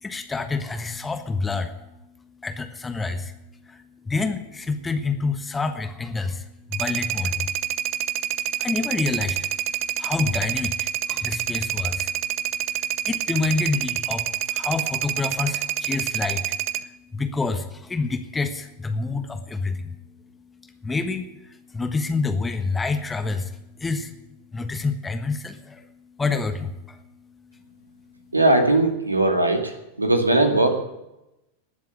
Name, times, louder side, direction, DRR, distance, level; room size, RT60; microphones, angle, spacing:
voice 1, 0.0-1.7 2.4-3.3 3.7-7.5 8.6-9.5 10.0-12.1 13.0-20.0 20.6-24.1 24.5-25.9 26.2-27.0, left 4 dB, 10° left, 7 dB, 1.4 m, -28 dB
sound 1, 6.7-16.8, right 12 dB, 40° right, 0.7 m, -27 dB
voice 2, 28.3-30.8, right 2 dB, 80° right, 5 dB, 2.3 m, -19 dB
19.0 x 7.5 x 9.9 m, 0.93 s
figure-of-eight pair, 90°, 0 cm